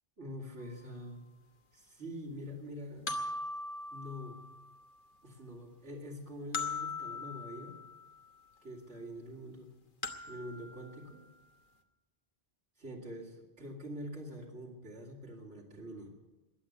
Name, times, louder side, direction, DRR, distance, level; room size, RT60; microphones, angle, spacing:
voice 1, 0.2-1.2 1.7-3.1 3.9-4.4 5.2-7.8 8.6-9.7 10.3-11.2 12.8-16.1, equal, 90° right, -3 dB, 3.1 m, -45 dB
sound 1, 0.6-0.7 3.1-4.9 6.5-8.2 10.0-11.5, left 3 dB, 50° left, 1.3 m, -40 dB
21.0 x 8.1 x 8.1 m, 1.1 s
omnidirectional pair, 1.1 m